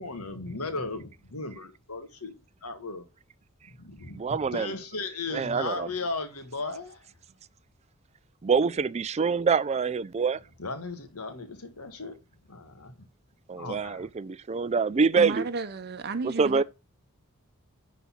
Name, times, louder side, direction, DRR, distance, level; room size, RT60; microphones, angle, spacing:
voice 1, 0.0-3.1 3.8-7.0 10.6-12.2 12.5-13.1 13.6-14.1, left 3 dB, 90° left, 1.7 m, -36 dB
voice 2, 4.1-4.7 5.3-5.9 8.4-10.4 13.5-15.5 16.4-16.6, right 5 dB, 30° right, 0.4 m, -25 dB
voice 3, 15.2-16.6, right 3 dB, 45° right, 0.7 m, -33 dB
10.5 x 4.1 x 5.7 m
head